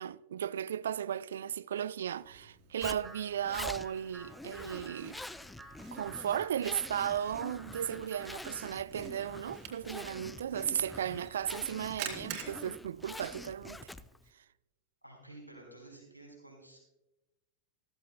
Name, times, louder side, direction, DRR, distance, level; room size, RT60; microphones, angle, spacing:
voice 1, 0.0-5.2 5.9-13.9, right 9 dB, 65° right, 0.3 m, -35 dB
Camera, 2.1-14.1, right 8 dB, 45° right, 2.9 m, -50 dB
Zipper (clothing), 2.8-14.3, left 2 dB, 5° left, 0.4 m, -46 dB
sound 1, 3.0-8.8, right 2 dB, 10° right, 2.0 m, -54 dB
voice 2, 15.0-16.8, right 2 dB, 90° right, 4.3 m, -52 dB
15.0 x 15.0 x 2.2 m
figure-of-eight pair, 90°, 0 cm